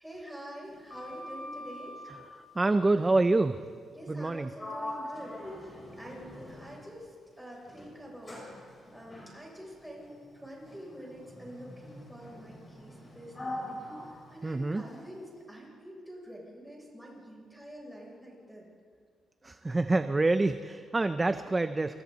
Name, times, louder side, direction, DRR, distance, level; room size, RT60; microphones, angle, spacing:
voice 1, 0.0-1.9 3.9-7.1 7.4-18.7, equal, ahead, -3 dB, 7.2 m, -47 dB
Sliding door, 0.7-2.2 4.1-4.3 4.6-7.0 7.7-15.1, left 1 dB, 20° left, 8.0 m, -44 dB
voice 2, 2.5-3.6 4.1-4.5 14.4-14.8 19.4-22.0, right 2 dB, 20° right, 10 dB, 0.7 m, -26 dB
27.5 x 26.0 x 4.2 m, 2.1 s
cardioid pair, 125°, 0 cm